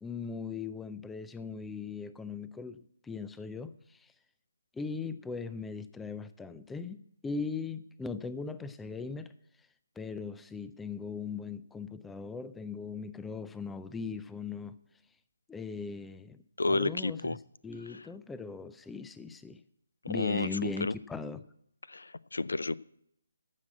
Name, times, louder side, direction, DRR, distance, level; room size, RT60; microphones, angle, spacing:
voice 1, 0.0-4.1 4.7-7.0 7.2-9.3 10.0-14.8 15.5-16.4 16.7-17.4 17.6-19.6 20.1-21.5, left 5 dB, 5° left, 0.4 m, -39 dB
voice 2, 16.6-17.4 17.9-18.1 20.1-20.9 21.9-22.8, left 3 dB, 65° left, 0.4 m, -31 dB
14.5 x 5.9 x 7.8 m
figure-of-eight pair, 145°, 0 cm